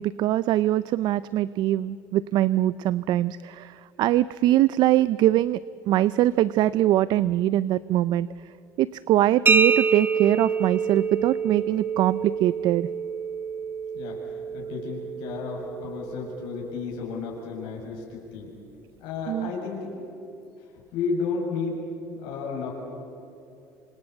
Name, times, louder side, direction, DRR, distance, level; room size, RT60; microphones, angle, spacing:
voice 1, 0.0-5.6 5.9-8.3 8.8-12.9 19.3-19.5, right 14 dB, 60° right, 18 dB, 0.5 m, -22 dB
sound 1, 9.5-17.0, right 5 dB, 25° right, 1.0 m, -27 dB
voice 2, 13.9-18.5 19.0-20.1 20.9-21.8 22.2-22.7, left 5 dB, 70° left, -2 dB, 7.5 m, -32 dB
26.5 x 26.5 x 8.3 m, 2.8 s
supercardioid pair, 95°, 8 cm